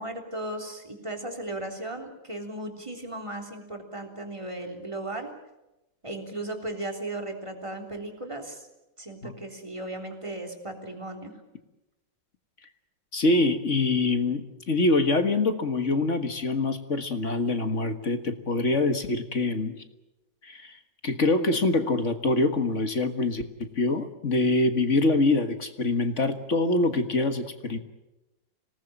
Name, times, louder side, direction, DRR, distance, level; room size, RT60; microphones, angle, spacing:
voice 1, 0.0-5.3 6.0-8.7 9.0-11.3, right 1 dB, 15° right, 3 dB, 3.5 m, -36 dB
voice 2, 13.1-19.8 20.4-20.8 21.0-27.8, left 2 dB, 40° left, 8 dB, 1.8 m, -25 dB
26.0 x 18.5 x 9.0 m, 0.97 s
omnidirectional pair, 2.0 m